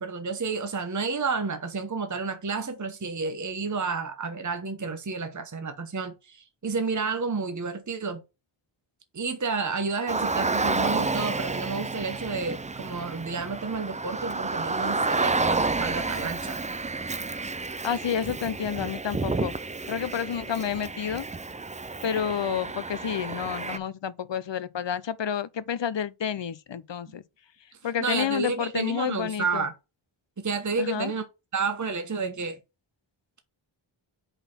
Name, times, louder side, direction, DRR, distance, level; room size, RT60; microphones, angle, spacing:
voice 1, 0.0-8.2 9.1-16.6 28.0-29.7 30.4-31.2 31.5-32.6, right 4 dB, 35° right, 1.0 m, -30 dB
Car, 10.1-23.8, right 3 dB, 15° right, 0.3 m, -30 dB
voice 2, 17.8-19.5 19.9-21.2 22.0-27.2 27.8-29.7 30.8-31.1, left 8 dB, 60° left, 0.7 m, -30 dB
5.4 x 4.1 x 5.5 m
wide cardioid pair, 70°, 49 cm